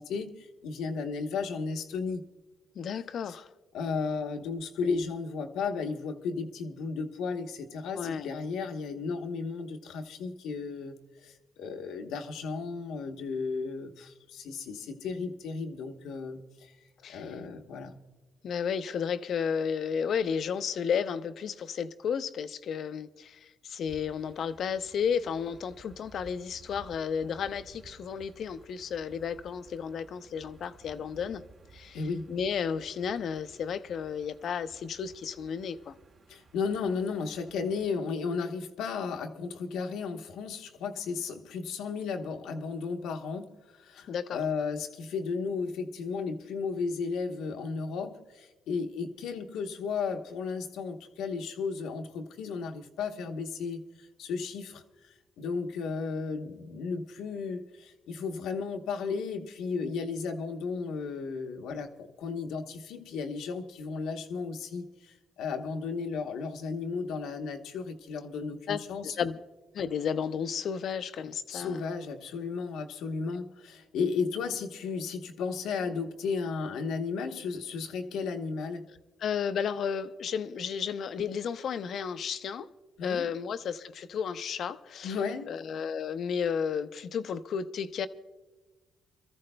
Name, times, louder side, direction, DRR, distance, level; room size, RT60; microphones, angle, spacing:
voice 1, 0.0-2.2 3.3-3.4 3.7-16.7 17.1-18.0 31.9-32.3 36.3-69.2 71.5-78.9 83.0-83.3 85.0-85.6, left 5 dB, 85° left, 1.0 m, -34 dB
voice 2, 2.8-3.5 7.9-8.3 17.0-17.2 18.4-31.4 31.7-32.0 32.3-35.9 44.1-44.4 68.7-69.4 69.7-71.8 79.2-82.7 83.0-85.2 85.5-88.1, left 7 dB, 65° left, 0.5 m, -33 dB
sound 1, 23.9-37.9, right 3 dB, 55° right, 1.6 m, -56 dB
28.0 x 14.0 x 2.2 m
cardioid pair, 90°, 0 cm